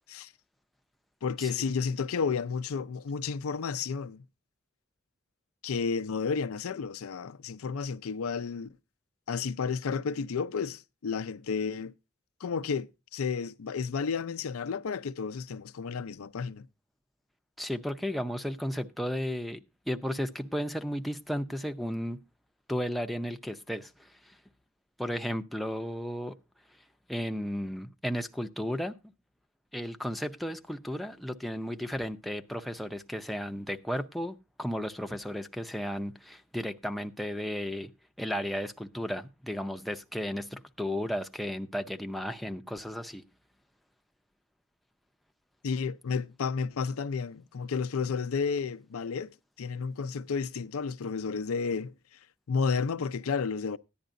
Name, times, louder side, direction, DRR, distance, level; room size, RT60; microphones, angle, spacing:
voice 1, 1.2-4.2 5.6-8.7 9.3-11.9 12.4-16.7 45.6-49.3 49.6-51.9 52.5-53.8, left 5 dB, 90° left, 0.5 m, -32 dB
voice 2, 17.6-19.6 19.9-22.2 22.7-24.3 25.0-26.3 27.1-28.9 29.7-37.9 38.2-43.2, equal, ahead, 0.5 m, -34 dB
14.5 x 10.0 x 2.6 m
head